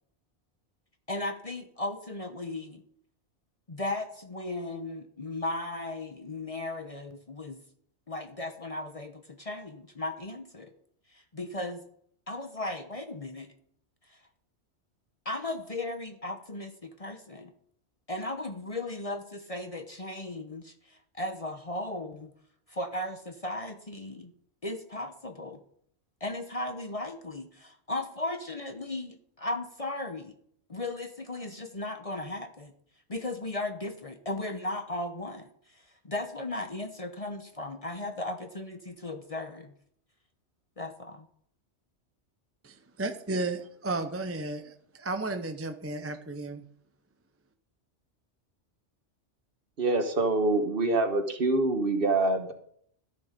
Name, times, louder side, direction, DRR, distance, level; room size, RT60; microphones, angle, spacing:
voice 1, 1.1-2.8 3.7-7.6 8.1-10.7 11.1-11.9 12.3-13.5 14.1-14.2 15.2-17.5 18.1-22.3 22.7-24.3 24.6-25.6 26.2-30.3 30.7-32.7 33.1-39.7 40.8-41.3, left 2 dB, 35° left, 6 dB, 0.9 m, -36 dB
voice 2, 42.6-46.6, right 2 dB, 15° right, 7 dB, 0.6 m, -33 dB
voice 3, 49.8-52.5, right 2 dB, 50° right, 7 dB, 1.5 m, -25 dB
13.0 x 7.2 x 5.2 m, 0.64 s
omnidirectional pair, 1.2 m